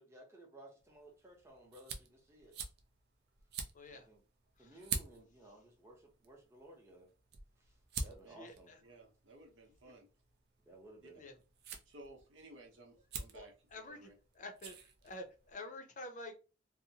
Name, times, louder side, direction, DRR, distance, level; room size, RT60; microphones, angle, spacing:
voice 1, 0.0-2.6 3.9-4.2 4.6-7.1 7.6-8.7 9.8-9.9 10.6-11.2, right 1 dB, 15° right, 0.8 m, -57 dB
sound 1, 0.8-15.5, right 5 dB, 55° right, 0.5 m, -48 dB
voice 2, 3.7-4.1 4.6-4.8 8.4-8.8 11.1-11.4 13.3-14.1 14.3-14.7 15.0-16.3, left 2 dB, 40° left, 0.5 m, -48 dB
voice 3, 8.8-10.1 11.0-11.1 11.9-13.5 13.8-14.1, right 2 dB, 80° right, 0.8 m, -56 dB
2.7 x 2.0 x 2.7 m
head